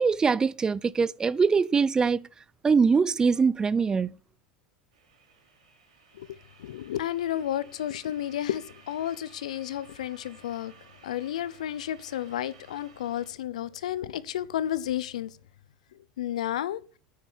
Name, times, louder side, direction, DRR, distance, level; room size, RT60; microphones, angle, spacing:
voice 1, 0.0-2.3 2.6-4.2, right 5 dB, 20° right, 0.5 m, -23 dB
sound 1, 4.9-13.3, right 5 dB, 85° right, 4.5 m, -56 dB
voice 2, 6.1-10.7 11.0-15.4 15.9-16.8, left 11 dB, 90° left, 0.7 m, -32 dB
9.5 x 9.0 x 6.1 m
supercardioid pair, 105°, 4 cm